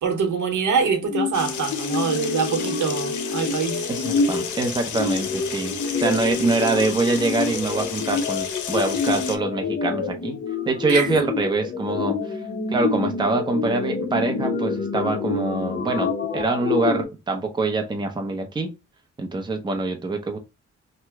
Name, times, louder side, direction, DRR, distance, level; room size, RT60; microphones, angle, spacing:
voice 1, 0.0-3.8 5.9-6.0 10.9-11.1, right 5 dB, 75° right, 0.9 m, -24 dB
sound 1, 1.0-17.1, left 4 dB, 35° left, 0.7 m, -27 dB
sound 2, 1.3-9.4, left 7 dB, 75° left, 0.7 m, -33 dB
voice 2, 3.9-5.7 6.0-10.4 10.7-12.4 12.7-18.7 19.2-20.4, right 3 dB, 15° right, 0.6 m, -24 dB
2.9 x 2.2 x 3.4 m
cardioid pair, 105°, 30 cm